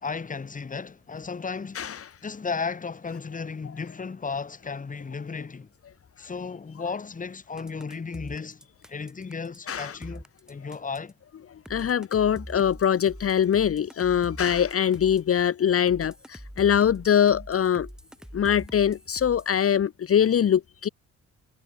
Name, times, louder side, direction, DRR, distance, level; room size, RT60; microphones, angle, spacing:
voice 1, 0.0-1.8 2.2-5.7 6.2-11.1, left 5 dB, 25° left, 1.7 m, -34 dB
sound 1, 7.6-11.1 11.6-15.3 15.9-19.6, equal, ahead, 4.0 m, -43 dB
voice 2, 11.7-17.9 18.3-20.9, left 9 dB, 50° left, 1.3 m, -23 dB
cardioid pair, 90°, 30 cm